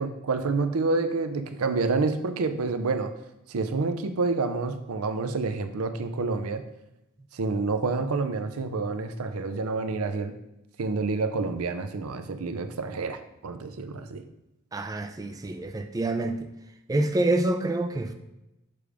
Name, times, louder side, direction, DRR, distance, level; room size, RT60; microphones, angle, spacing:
voice 1, 0.0-3.1 3.5-6.6 7.3-10.4 10.8-14.2, right 3 dB, 75° right, 9 dB, 0.5 m, -28 dB
voice 2, 14.7-16.5 16.9-18.1, right 2 dB, 15° right, 6 dB, 0.4 m, -27 dB
6.8 x 4.9 x 3.4 m, 0.90 s
head